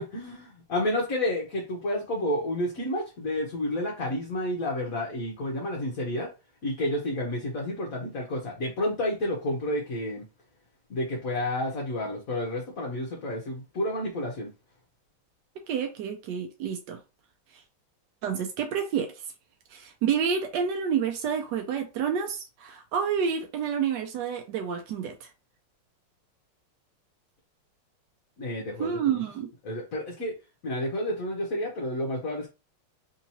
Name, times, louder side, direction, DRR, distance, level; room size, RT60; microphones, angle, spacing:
voice 1, 0.0-6.3 6.6-10.3 10.9-14.5 28.4-29.2 29.6-30.3 30.6-32.5, left 1 dB, 55° left, 1.1 m, -30 dB
voice 2, 15.7-17.0 17.5-17.6 18.2-19.1 19.7-25.3 28.8-29.5, right 7 dB, 75° right, 1.0 m, -29 dB
3.6 x 2.8 x 2.8 m
omnidirectional pair, 2.3 m